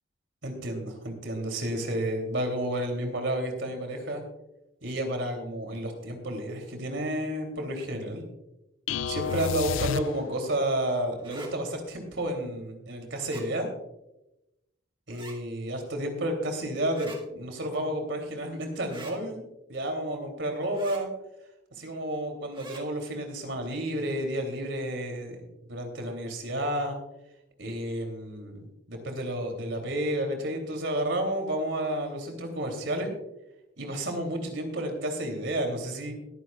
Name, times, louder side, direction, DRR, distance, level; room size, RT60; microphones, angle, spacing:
voice 1, 0.4-4.2 4.8-8.2 9.1-13.7 15.1-21.1 21.7-25.4 25.7-27.0 27.6-33.1 33.8-36.1, right 1 dB, 70° right, 4 dB, 3.0 m, -31 dB
sound 1, 8.9-10.6, left 7 dB, 85° left, 0.4 m, -30 dB
sound 2, 9.2-9.5 11.2-11.5 13.1-13.5 15.1-15.4 16.9-17.2 18.9-19.2 20.7-21.0 22.5-22.8, right 3 dB, 25° right, 1.8 m, -45 dB
21.5 x 9.6 x 2.4 m, 0.92 s
head